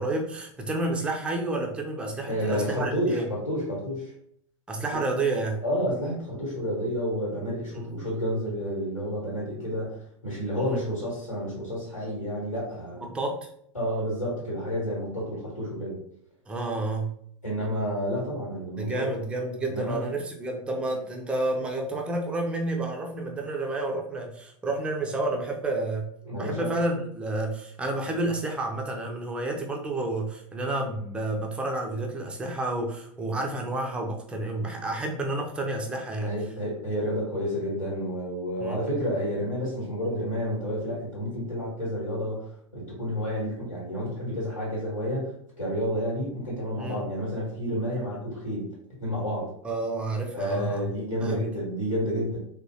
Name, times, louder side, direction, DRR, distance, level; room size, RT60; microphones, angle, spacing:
voice 1, 0.0-3.2 4.7-5.6 7.7-7.9 10.6-10.8 13.0-13.5 16.5-17.2 18.8-26.1 26.4-36.3 38.6-38.9 46.8-47.1 49.6-50.9 51.2-51.5, right 2 dB, 5° right, 1 dB, 0.4 m, -30 dB
voice 2, 2.3-4.1 4.9-5.0 5.6-10.0 10.2-13.1 13.7-16.0 17.4-19.1 19.7-20.1 26.2-26.7 36.2-42.5 42.7-48.6 49.0-49.5 50.3-52.4, equal, 90° left, -7 dB, 1.4 m, -30 dB
3.6 x 2.2 x 2.7 m, 0.67 s
figure-of-eight pair, 90°, 17 cm